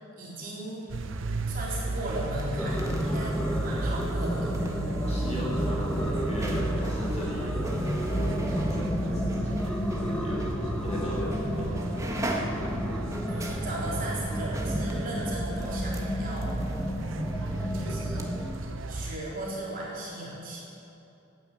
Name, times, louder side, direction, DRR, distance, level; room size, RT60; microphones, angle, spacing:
voice 1, 0.2-0.8 1.5-4.5 13.3-16.6 17.7-18.3 18.9-20.6, right 1 dB, 40° right, -5 dB, 3.8 m, -36 dB
sound 1, 0.9-19.2, right 2 dB, 65° right, 0.8 m, -34 dB
sound 2, 2.3-10.1 10.4-10.5 11.3-11.5 11.7-18.3 18.5-18.6, right 1 dB, 15° right, 1.4 m, -39 dB
sound 3, 2.6-18.6, equal, 5° left, 1.1 m, -32 dB
voice 2, 5.1-10.4 10.8-12.2, equal, 30° left, -4 dB, 4.3 m, -38 dB
15.5 x 9.2 x 8.7 m, 2.8 s
head